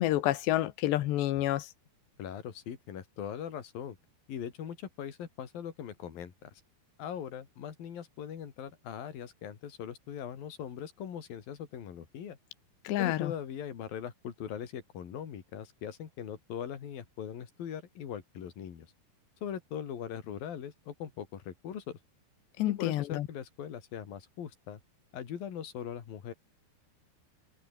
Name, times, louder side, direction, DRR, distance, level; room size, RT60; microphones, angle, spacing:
voice 1, 0.0-1.7 12.9-13.3 22.6-23.3, left 14 dB, 75° left, 3.4 m, -28 dB
voice 2, 2.2-4.0 4.3-6.6 7.0-12.4 13.0-18.9 19.4-22.0 22.6-24.8 25.1-26.3, left 9 dB, 55° left, 4.4 m, -41 dB
omnidirectional pair, 5.2 m